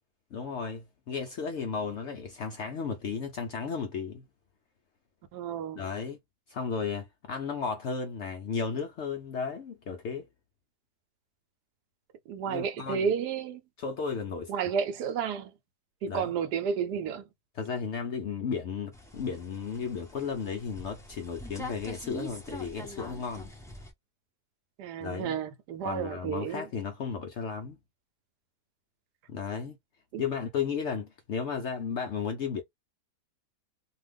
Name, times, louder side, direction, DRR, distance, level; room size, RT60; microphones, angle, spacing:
voice 1, 0.3-4.2 5.7-6.2 6.5-10.3 12.5-13.1 13.8-14.5 16.1-16.3 17.5-23.5 25.0-25.4 25.8-27.8 29.3-29.8 30.2-32.6, left 6 dB, 70° left, 0.7 m, -34 dB
voice 2, 5.3-5.8 12.3-13.6 14.5-15.5 16.0-17.2 24.8-26.6 30.1-30.2, right 7 dB, 85° right, 1.2 m, -31 dB
sound 1, 18.9-23.9, left 1 dB, 5° left, 0.4 m, -44 dB
2.7 x 2.3 x 3.3 m
omnidirectional pair, 1.7 m